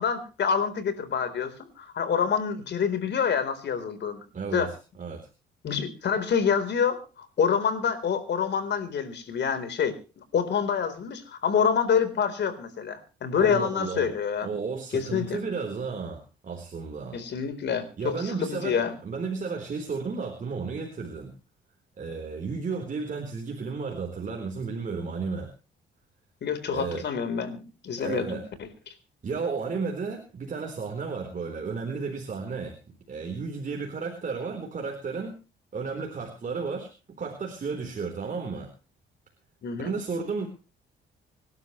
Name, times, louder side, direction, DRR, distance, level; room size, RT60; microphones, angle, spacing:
voice 1, 0.0-4.2 4.5-4.7 5.6-14.5 14.9-15.4 17.1-18.9 26.4-28.4 28.9-29.0 39.6-39.9, left 7 dB, 60° left, 11 dB, 4.1 m, -27 dB
voice 2, 4.3-5.3 13.4-14.1 14.4-17.2 18.0-21.3 22.0-25.5 26.7-27.0 28.0-28.4 29.2-32.8 33.1-35.3 35.7-36.9 37.2-38.7 39.8-40.5, right 4 dB, 40° right, 2 dB, 4.0 m, -33 dB
26.0 x 12.0 x 3.2 m, 0.33 s
cardioid pair, 90°, 20 cm